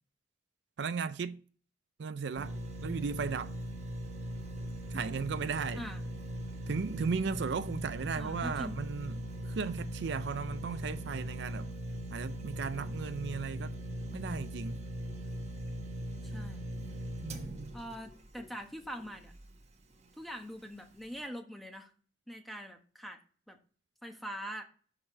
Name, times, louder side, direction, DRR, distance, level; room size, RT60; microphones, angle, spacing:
voice 1, 0.8-1.4 2.0-3.5 4.9-5.8 6.7-11.7 12.1-13.7 14.1-14.8 17.2-17.7, right 5 dB, 65° right, 0.4 m, -36 dB
sound 1, 2.4-19.6 20.0-20.1, equal, 35° right, 1.2 m, -40 dB
voice 2, 8.2-8.8 16.2-16.7 17.7-19.3 20.2-21.9 22.3-23.2 23.5-23.6 24.0-24.6, equal, ahead, 1.1 m, -43 dB
6.5 x 4.8 x 5.9 m
head